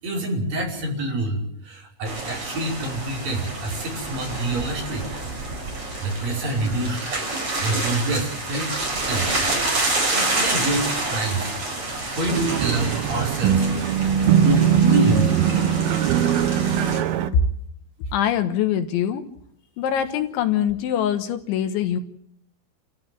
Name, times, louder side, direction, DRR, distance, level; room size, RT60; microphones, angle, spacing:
voice 1, 0.0-5.2 6.0-9.3 10.1-13.7 14.0-14.1 14.4-15.5, right 2 dB, 45° right, 0 dB, 6.7 m, -27 dB
sound 1, 2.0-17.0, right 2 dB, 30° right, 5.4 m, -28 dB
sound 2, 12.3-17.3, right 8 dB, 75° right, 2.3 m, -20 dB
voice 2, 18.1-19.2 19.8-22.0, left 9 dB, 75° left, 8 dB, 3.6 m, -23 dB
29.5 x 15.5 x 7.7 m, 0.70 s
omnidirectional pair, 5.7 m